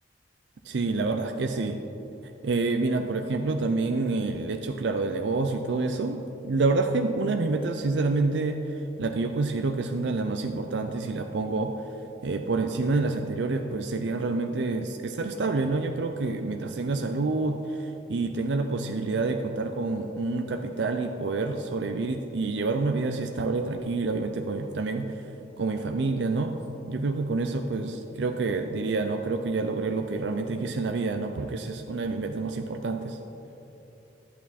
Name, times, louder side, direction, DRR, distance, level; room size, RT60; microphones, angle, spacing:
voice 1, 0.6-1.8 2.4-11.7 12.2-25.2 25.6-26.5 26.9-33.2, right 3 dB, 75° right, 5 dB, 0.5 m, -28 dB
11.0 x 8.4 x 4.2 m, 2.9 s
head